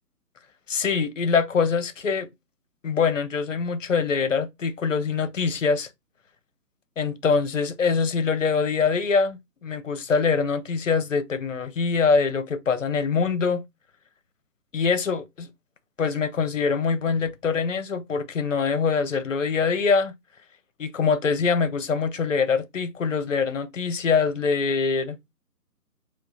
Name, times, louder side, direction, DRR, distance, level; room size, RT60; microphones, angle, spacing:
voice 1, 0.7-2.3 2.8-5.9 7.0-13.6 14.7-15.5 16.0-20.1 20.8-25.2, left 5 dB, 50° left, 0.6 m, -24 dB
4.6 x 2.1 x 2.7 m
figure-of-eight pair, 140°, 49 cm